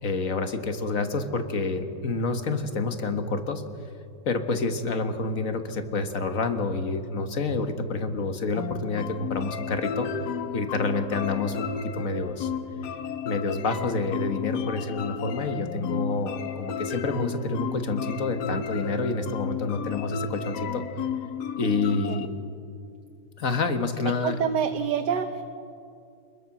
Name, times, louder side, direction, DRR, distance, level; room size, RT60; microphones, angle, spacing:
voice 1, 0.0-3.6 4.3-10.1 10.5-11.7 11.9-12.5 13.3-20.8 21.6-22.3 23.4-24.4, left 3 dB, 55° left, 7 dB, 1.7 m, -28 dB
sound 1, 8.5-22.3, left 7 dB, 75° left, 1.5 m, -33 dB
voice 2, 24.2-25.4, right 7 dB, 85° right, 7 dB, 1.5 m, -26 dB
25.0 x 21.5 x 6.1 m, 2.5 s
omnidirectional pair, 1.8 m